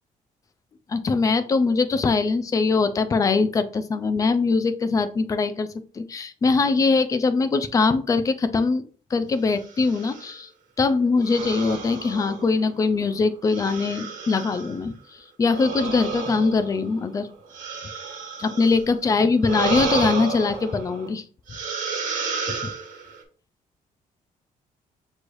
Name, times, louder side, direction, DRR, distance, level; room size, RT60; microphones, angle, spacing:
voice 1, 0.9-5.7 5.9-8.8 9.1-10.5 10.8-17.3 18.4-21.2, left 4 dB, 25° left, 10 dB, 0.4 m, -22 dB
sound 1, 9.6-10.3 11.2-12.9 13.5-14.8 15.5-18.8 19.4-21.1 21.5-23.2, right 5 dB, 70° right, 1.2 m, -32 dB
6.2 x 3.2 x 2.6 m, 0.40 s
cardioid pair, 160°, 14 cm